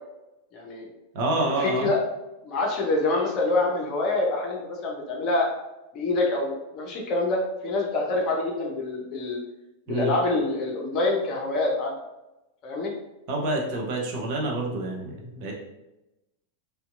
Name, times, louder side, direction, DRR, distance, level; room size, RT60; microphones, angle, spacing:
voice 1, 0.5-0.9 1.4-2.0 2.4-5.5 5.9-9.4 9.9-11.9 12.6-12.9, left 2 dB, 40° left, 0 dB, 0.6 m, -26 dB
voice 2, 1.1-1.9 9.9-10.1 13.3-15.5, right 2 dB, 45° right, -1 dB, 0.6 m, -27 dB
2.7 x 2.2 x 2.3 m, 0.95 s
figure-of-eight pair, 90°, 0 cm